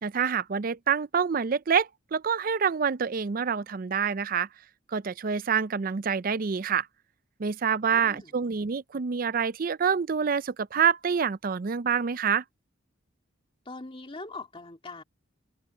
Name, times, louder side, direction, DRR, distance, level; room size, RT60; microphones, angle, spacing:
voice 1, 0.0-4.5 4.9-6.9 7.4-12.4, right 6 dB, 45° right, 0.5 m, -27 dB
voice 2, 7.9-8.3 13.7-15.0, left 3 dB, 30° left, 2.5 m, -41 dB
open air
head